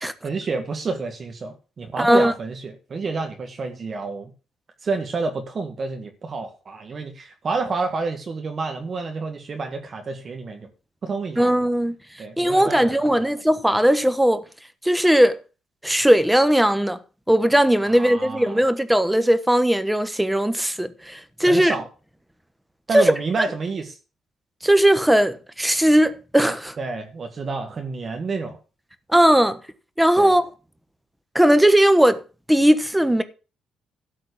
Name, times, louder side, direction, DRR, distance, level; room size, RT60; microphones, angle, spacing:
voice 1, 0.2-4.3 4.8-10.7 11.0-11.5 12.2-13.2 17.9-18.6 21.4-21.9 22.9-24.0 26.8-28.6 30.2-30.3, right 4 dB, 45° right, 1.6 m, -29 dB
voice 2, 2.0-2.3 11.4-11.9 12.4-14.4 14.8-15.4 15.8-17.0 17.3-21.7 22.9-23.0 24.6-26.7 29.1-29.6 30.0-30.4 31.3-32.2 32.5-33.2, right 1 dB, 5° right, 1.1 m, -18 dB
12.5 x 4.4 x 8.4 m
cardioid pair, 90°, 0 cm